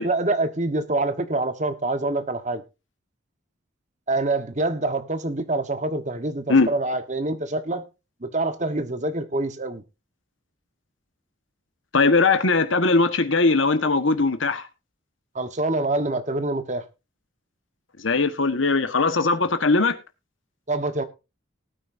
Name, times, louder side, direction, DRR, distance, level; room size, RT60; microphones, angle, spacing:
voice 1, 0.0-2.6 4.1-7.9 8.2-9.8 15.3-16.8 20.7-21.0, right 2 dB, 35° right, 1.3 m, -26 dB
voice 2, 11.9-14.6 18.0-20.0, left 3 dB, 80° left, 1.4 m, -20 dB
19.5 x 9.3 x 2.6 m
head